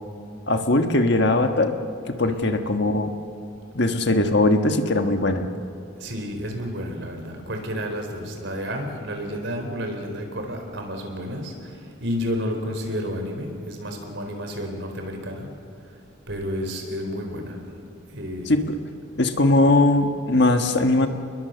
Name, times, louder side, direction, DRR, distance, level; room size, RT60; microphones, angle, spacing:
voice 1, 0.5-1.7 2.1-3.1 3.7-5.5 18.5-18.8 19.2-21.1, left 2 dB, 55° left, 6 dB, 1.5 m, -20 dB
voice 2, 2.2-2.6 6.0-15.5 16.3-17.7 18.1-18.5, equal, 60° right, 4 dB, 4.2 m, -31 dB
29.5 x 21.5 x 6.9 m, 2.4 s
head